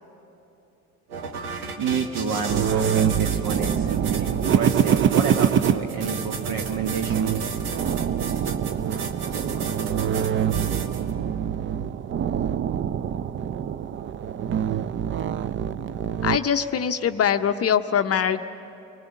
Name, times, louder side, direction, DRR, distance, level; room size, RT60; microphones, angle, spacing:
sound 1, 1.1-11.1, right 4 dB, 85° right, 1.3 m, -33 dB
voice 1, 1.8-7.5 8.3-8.4 9.2-9.5, right 6 dB, 55° right, 3 dB, 1.3 m, -29 dB
sound 2, 2.5-16.4, right 9 dB, 30° right, 0.5 m, -25 dB
voice 2, 16.2-18.4, left 8 dB, 35° left, 8 dB, 0.7 m, -22 dB
26.0 x 19.5 x 7.1 m, 2.9 s
hypercardioid pair, 60°, 43 cm